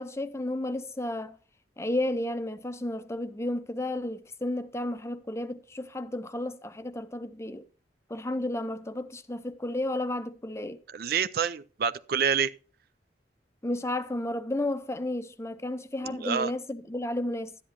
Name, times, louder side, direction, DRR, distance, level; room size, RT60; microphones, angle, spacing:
voice 1, 0.0-1.4 1.8-7.7 8.1-10.8 13.6-17.6, left 1 dB, 15° left, 0.5 m, -32 dB
voice 2, 10.9-12.5 16.0-16.5, right 7 dB, 55° right, 0.4 m, -27 dB
12.5 x 10.0 x 2.9 m
head